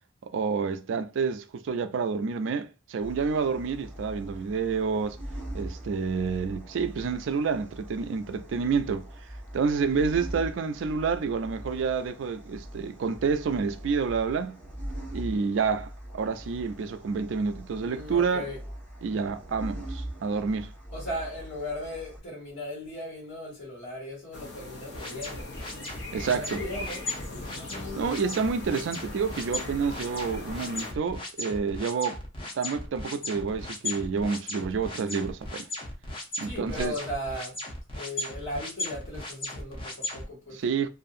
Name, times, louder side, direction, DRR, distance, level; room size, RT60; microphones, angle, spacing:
voice 1, 0.2-5.2 5.5-9.1 9.5-14.6 15.1-18.5 19.0-20.7 26.1-26.6 27.9-32.2 32.5-35.7 36.4-36.9 40.6-40.9, right 5 dB, 70° right, 0.4 m, -29 dB
sound 1, 3.0-22.2, right 1 dB, 10° left, 1.2 m, -42 dB
voice 2, 17.7-18.6 20.9-25.7 26.3-27.1 27.3-28.3 36.4-37.6 37.9-40.6, left 1 dB, 85° left, 1.5 m, -37 dB
sound 2, 24.3-30.9, left 2 dB, 60° left, 0.6 m, -41 dB
sound 3, 24.9-40.2, left 2 dB, 25° left, 0.7 m, -37 dB
2.6 x 2.5 x 2.5 m
head